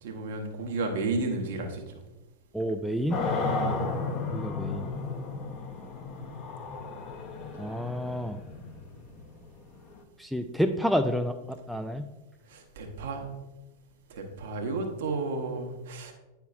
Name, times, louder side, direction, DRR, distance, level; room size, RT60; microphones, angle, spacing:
voice 1, 0.0-1.8 12.5-13.3 14.1-16.1, right 3 dB, 55° right, 3 dB, 1.1 m, -32 dB
voice 2, 2.5-3.2 4.3-4.9 7.6-8.4 10.2-12.1, equal, ahead, 6 dB, 0.3 m, -29 dB
sound 1, 3.1-10.0, left 3 dB, 30° left, 0.8 m, -33 dB
9.1 x 5.7 x 2.4 m, 1.1 s
figure-of-eight pair, 90°, 0 cm